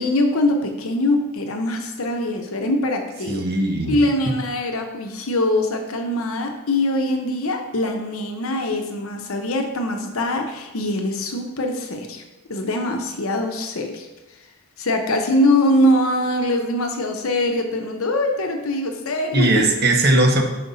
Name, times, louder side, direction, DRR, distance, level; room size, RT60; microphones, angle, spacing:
voice 1, 0.0-3.4 3.9-12.2 12.5-14.1 14.8-19.5, left 1 dB, 65° left, 4 dB, 0.8 m, -22 dB
voice 2, 3.2-4.1 19.3-20.4, right 2 dB, 45° right, 2 dB, 0.9 m, -18 dB
5.8 x 5.2 x 4.0 m, 1.1 s
head